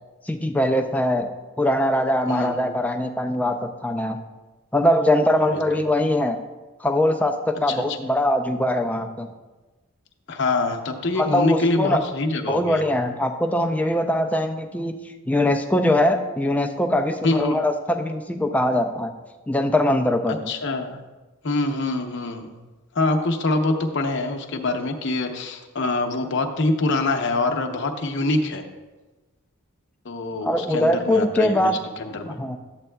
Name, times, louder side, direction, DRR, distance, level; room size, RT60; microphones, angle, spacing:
voice 1, 0.3-1.3 1.6-4.2 4.7-6.4 6.8-9.3 11.2-12.1 12.5-15.0 15.3-19.1 19.5-20.4 30.4-31.8 32.4-32.6, left 1 dB, 5° left, 5 dB, 0.4 m, -22 dB
voice 2, 2.3-2.8 5.3-5.6 7.7-8.1 10.3-12.8 17.2-17.6 20.3-21.0 21.4-22.6 22.9-28.6 30.0-32.4, left 2 dB, 55° left, 3 dB, 0.7 m, -25 dB
11.5 x 8.0 x 2.2 m, 1.2 s
head